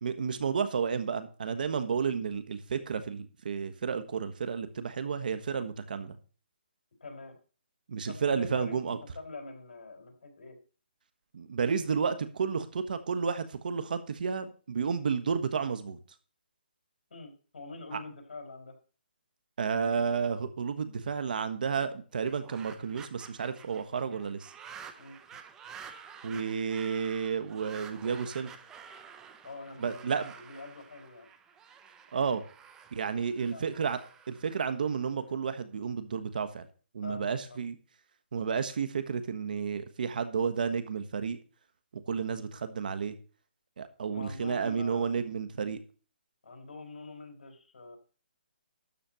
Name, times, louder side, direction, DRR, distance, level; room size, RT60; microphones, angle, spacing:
voice 1, 0.0-6.2 7.9-9.0 11.3-16.0 17.9-18.0 19.6-24.5 26.2-28.5 29.8-30.3 32.1-32.4 32.9-34.0 34.3-36.7 36.9-37.8 38.3-41.4 41.9-43.2 43.8-45.8, right 6 dB, 55° right, 10 dB, 1.3 m, -31 dB
voice 2, 7.0-7.4 8.1-10.6 17.1-18.8 25.0-25.2 29.4-31.3 33.2-33.7 37.0-37.6 44.1-45.1 46.4-48.0, left 3 dB, 65° left, 4 dB, 4.1 m, -45 dB
sound 1, 22.2-35.3, right 7 dB, 10° right, 0.6 m, -50 dB
12.5 x 4.3 x 7.7 m, 0.38 s
hypercardioid pair, 165°, 6 cm